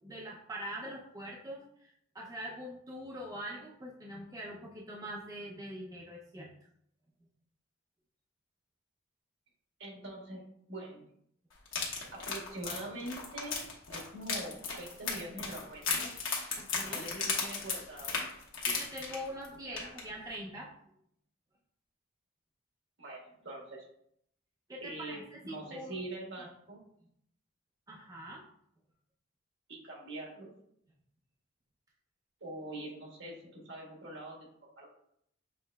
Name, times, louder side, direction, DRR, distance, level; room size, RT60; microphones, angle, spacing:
voice 1, 0.0-6.5 16.6-17.0 18.6-20.7 24.7-26.0 27.9-28.4, equal, 20° right, -3 dB, 0.5 m, -43 dB
voice 2, 9.8-10.4 10.7-11.0 12.1-13.6 13.9-16.1 16.9-18.2 19.6-19.9 23.0-23.9 24.8-26.8 29.7-30.5 32.4-34.5 34.7-34.9, right 1 dB, 65° right, -2 dB, 1.4 m, -43 dB
sound 1, 11.7-19.5 19.8-20.0 20.3-20.4, left 4 dB, 85° left, 1.1 m, -35 dB
6.7 x 3.1 x 2.2 m, 0.70 s
head